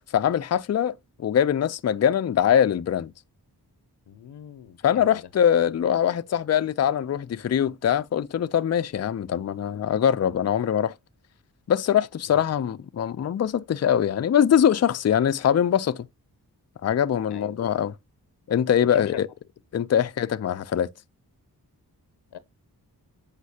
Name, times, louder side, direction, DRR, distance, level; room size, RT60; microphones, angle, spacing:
voice 1, 0.0-3.1 4.8-10.9 11.7-16.1 16.8-17.9 18.5-19.3 19.7-20.9, left 9 dB, 40° left, 0.4 m, -23 dB
voice 2, 4.1-5.2 12.3-12.4 17.3-17.6 18.8-19.2 22.3-22.4, left 9 dB, 90° left, 0.7 m, -41 dB
8.2 x 5.1 x 2.8 m
wide cardioid pair, 90°, 39 cm